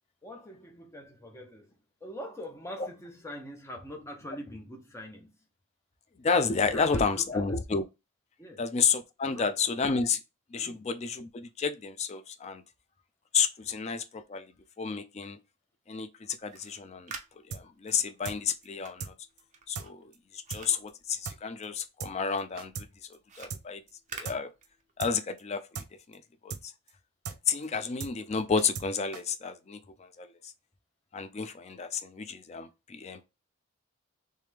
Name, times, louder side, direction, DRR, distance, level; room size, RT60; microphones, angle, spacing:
voice 1, 0.2-5.3 6.7-7.6 8.4-8.6 9.3-9.5 10.6-10.9, equal, 15° left, 0.7 m, -44 dB
voice 2, 6.2-7.8 8.6-10.2 10.5-12.6 13.3-14.5 14.8-15.4 15.9-17.1 17.5-19.1 19.7-22.7 23.4-23.8 24.1-24.5 25.0-25.8 26.1-26.7 27.5-30.3 31.1-33.3, left 5 dB, 30° left, 0.3 m, -31 dB
sound 1, 16.4-21.9 22.2-25.1, right 5 dB, 35° right, 0.6 m, -49 dB
sound 2, 17.5-17.6 17.9-18.0 18.2-18.4 18.6-18.7 19.0-19.1 19.4-19.5 19.7-19.9 20.1-20.2 20.5-20.6 20.9-21.0 21.2-21.4 21.6-21.7 22.0-22.1 22.4-22.9 23.1-23.2 23.5-23.6 23.9-24.0 24.2-24.4 24.6-24.7 25.0-25.1 25.4-25.5 25.7-25.9 26.1-26.2 26.5-26.6 26.9-27.0 27.2-27.4 27.6-27.7 28.0-28.1 28.4-28.9 29.1-29.2, right 5 dB, 85° right, 0.5 m, -38 dB
3.3 x 3.2 x 3.3 m
head